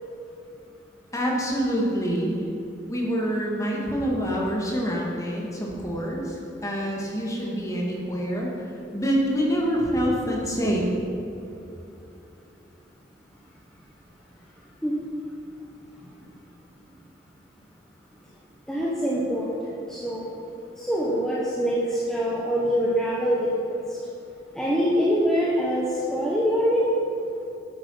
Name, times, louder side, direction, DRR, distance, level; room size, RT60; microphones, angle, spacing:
voice 1, 1.1-2.4 2.9-8.5 8.9-10.9, equal, 20° left, -3 dB, 1.9 m, -26 dB
voice 2, 18.7-20.3 20.8-23.4 23.7-24.0 24.5-26.9, equal, 5° left, -7 dB, 1.2 m, -24 dB
8.9 x 8.8 x 5.7 m, 2.8 s
head